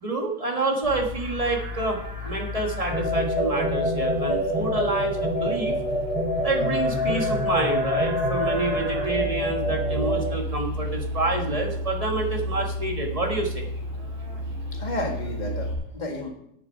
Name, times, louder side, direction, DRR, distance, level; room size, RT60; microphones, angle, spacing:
voice 1, 0.0-5.7 6.4-13.7, right 2 dB, 20° right, 1 dB, 1.5 m, -28 dB
Livestock farm animals working animals, 0.8-15.7, left 1 dB, 75° right, 3.2 m, -33 dB
sound 1, 2.9-10.3, equal, 75° left, 5.9 m, -26 dB
voice 2, 14.7-16.3, left 1 dB, 25° left, 1 dB, 1.8 m, -32 dB
11.0 x 8.6 x 4.7 m, 0.72 s
omnidirectional pair, 2.1 m